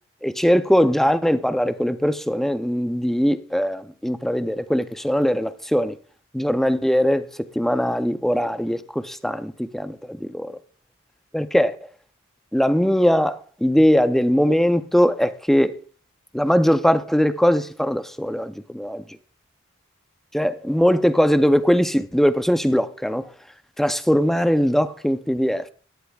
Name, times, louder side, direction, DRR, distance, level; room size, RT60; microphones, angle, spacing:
voice 1, 0.2-6.0 6.3-7.3 7.6-10.6 11.3-11.8 12.5-15.7 16.3-19.0 20.3-23.3 23.8-25.7, equal, ahead, 0.5 m, -20 dB
17.5 x 12.0 x 2.3 m
head